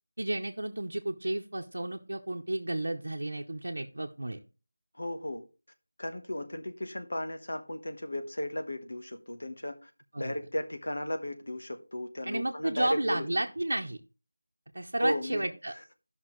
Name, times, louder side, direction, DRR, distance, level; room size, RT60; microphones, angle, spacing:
voice 1, 0.2-4.4 10.1-10.3 12.3-14.0 14.7-15.7, right 1 dB, 70° right, 0.9 m, -32 dB
voice 2, 5.0-5.4 6.0-9.9 10.2-13.3 15.0-15.5, left 1 dB, 70° left, 1.2 m, -35 dB
15.0 x 5.8 x 3.2 m
figure-of-eight pair, 180°, 0 cm